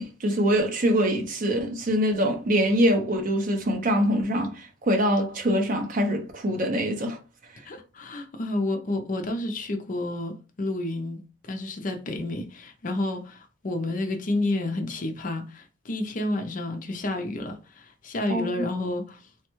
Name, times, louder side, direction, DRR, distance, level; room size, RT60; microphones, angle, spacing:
voice 1, 0.0-7.2 18.3-18.7, equal, 40° right, 0.6 m, -24 dB
voice 2, 7.7-11.2 11.5-19.2, left 2 dB, 40° left, 0.4 m, -30 dB
3.4 x 2.2 x 3.0 m
head